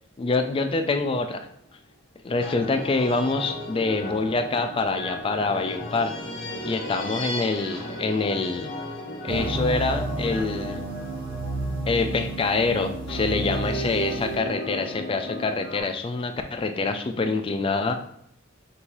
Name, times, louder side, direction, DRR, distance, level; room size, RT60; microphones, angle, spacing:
voice 1, 0.2-1.5 2.2-6.1 6.6-8.7 9.2-10.9 11.9-17.9, left 3 dB, 25° left, 7 dB, 0.3 m, -26 dB
sound 1, 0.7-1.1 2.4-12.1 13.1-15.8, equal, 65° left, 1.1 m, -35 dB
sound 2, 9.3-14.4, right 2 dB, 45° right, 0.8 m, -31 dB
5.2 x 2.6 x 3.0 m, 0.71 s
head